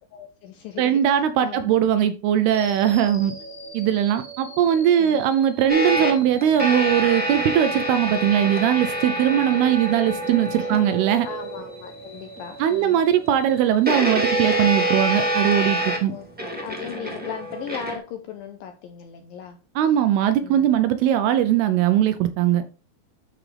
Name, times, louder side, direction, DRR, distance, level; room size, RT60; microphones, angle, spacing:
voice 1, 0.1-1.8 2.9-3.2 4.9-5.3 9.1-9.4 10.6-10.8 11.3-13.0 15.9-16.3 16.6-19.6 20.4-20.7, left 8 dB, 80° left, 2.1 m, -38 dB
voice 2, 0.8-3.3 3.7-11.3 12.6-16.1 19.8-22.6, right 10 dB, 80° right, 2.4 m, -20 dB
sound 1, 2.5-14.6, right 2 dB, 15° left, 1.9 m, -42 dB
sound 2, 5.7-11.8 12.4-12.5 13.9-18.0, right 1 dB, 5° right, 1.3 m, -26 dB
12.0 x 4.9 x 3.3 m
omnidirectional pair, 5.0 m